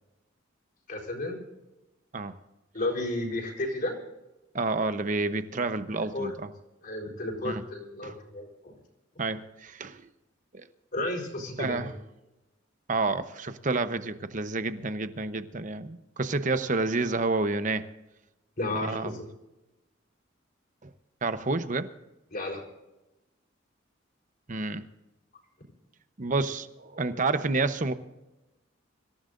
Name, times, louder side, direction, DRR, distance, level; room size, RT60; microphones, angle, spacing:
voice 1, 0.9-1.4 2.7-3.9 5.9-6.3 6.8-8.7 10.9-11.9 18.6-19.3 22.3-22.6, left 2 dB, 50° left, -2 dB, 4.3 m, -32 dB
voice 2, 4.5-6.5 7.4-7.6 8.0-8.2 9.2-10.0 10.5-10.7 11.6-11.9 12.9-17.8 18.7-19.2 20.8-20.9 21.2-21.9 24.5-24.8 26.2-27.9, right 3 dB, 40° right, 11 dB, 0.9 m, -29 dB
25.0 x 15.0 x 2.6 m, 1.0 s
head